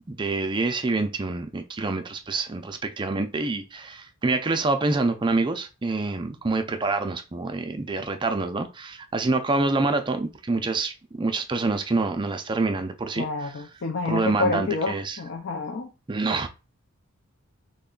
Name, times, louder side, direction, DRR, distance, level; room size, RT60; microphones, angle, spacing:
voice 1, 0.1-13.5 14.1-15.2 16.1-16.5, right 3 dB, 20° right, 0.4 m, -26 dB
voice 2, 13.2-15.9, left 3 dB, 55° left, 0.5 m, -28 dB
3.2 x 2.2 x 3.7 m
head